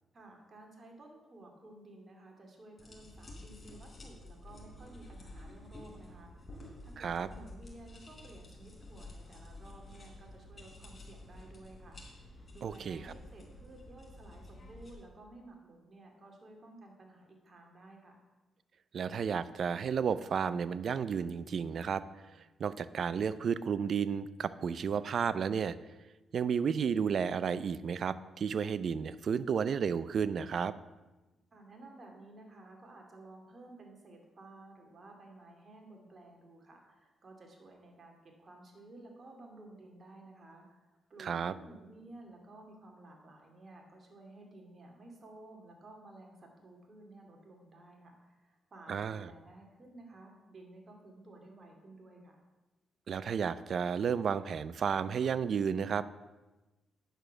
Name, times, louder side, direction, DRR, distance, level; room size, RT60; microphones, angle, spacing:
voice 1, 0.1-18.2 31.5-52.4, right 2 dB, 45° right, 1 dB, 2.5 m, -54 dB
sound 1, 2.8-14.9, left 1 dB, 35° left, 3.6 m, -51 dB
voice 2, 7.0-7.3 12.6-13.1 18.9-22.0 22.6-25.8 26.3-30.7 41.2-41.5 48.9-49.3 53.1-56.0, right 7 dB, 60° right, 15 dB, 0.5 m, -32 dB
9.0 x 6.6 x 6.0 m, 1.1 s
cardioid pair, 75°, 0 cm